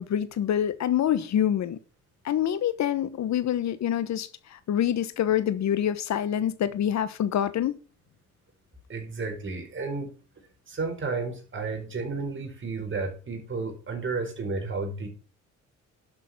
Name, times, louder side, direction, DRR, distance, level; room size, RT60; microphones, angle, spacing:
voice 1, 0.0-1.8 2.2-7.8, left 10 dB, 65° left, 1.1 m, -26 dB
voice 2, 8.9-10.1 10.7-15.1, right 4 dB, 40° right, 4.7 m, -32 dB
11.5 x 6.9 x 6.1 m
cardioid pair, 90°, 30 cm